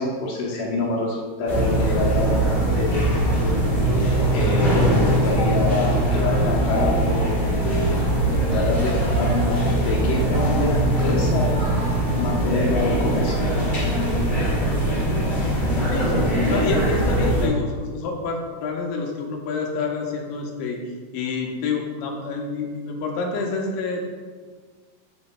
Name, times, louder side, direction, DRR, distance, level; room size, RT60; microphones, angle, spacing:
voice 1, 0.0-3.1 4.3-7.5 8.5-11.6 12.2-13.4, left 2 dB, 70° left, -3 dB, 2.3 m, -26 dB
sound 1, 1.5-17.5, right 1 dB, 45° left, 1.4 m, -21 dB
voice 2, 15.9-20.8 21.1-24.1, left 4 dB, 85° left, 1 dB, 2.6 m, -27 dB
8.1 x 6.6 x 2.2 m, 1.5 s
omnidirectional pair, 3.9 m